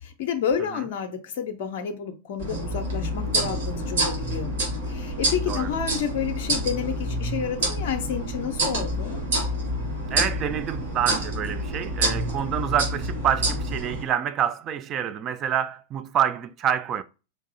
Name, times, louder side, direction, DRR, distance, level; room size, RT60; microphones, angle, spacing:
voice 1, 0.0-4.5 4.9-9.2, left 8 dB, 50° left, 0.5 m, -30 dB
sound 1, 2.4-14.0, right 1 dB, 60° right, 1.6 m, -28 dB
voice 2, 10.1-17.0, right 9 dB, 30° right, 0.3 m, -27 dB
4.4 x 2.6 x 2.6 m
figure-of-eight pair, 90°, 0 cm